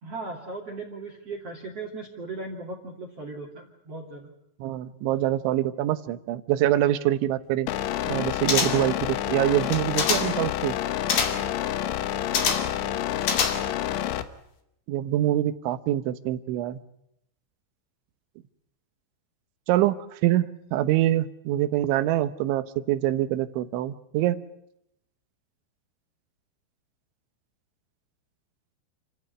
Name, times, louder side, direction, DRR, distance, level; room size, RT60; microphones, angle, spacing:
voice 1, 0.0-4.3, right 3 dB, 40° right, 1 dB, 2.9 m, -37 dB
voice 2, 4.6-7.7 8.1-10.8 14.9-16.8 19.7-24.4, right 13 dB, 80° right, 12 dB, 3.4 m, -25 dB
sound 1, 7.7-14.2, left 11 dB, 80° left, 3.6 m, -29 dB
sound 2, 8.5-9.0 9.6-10.4 11.1-11.5 12.3-12.8 13.2-13.9 14.2-14.3, left 6 dB, 55° left, 3.8 m, -26 dB
29.0 x 15.0 x 9.8 m, 0.78 s
omnidirectional pair, 5.4 m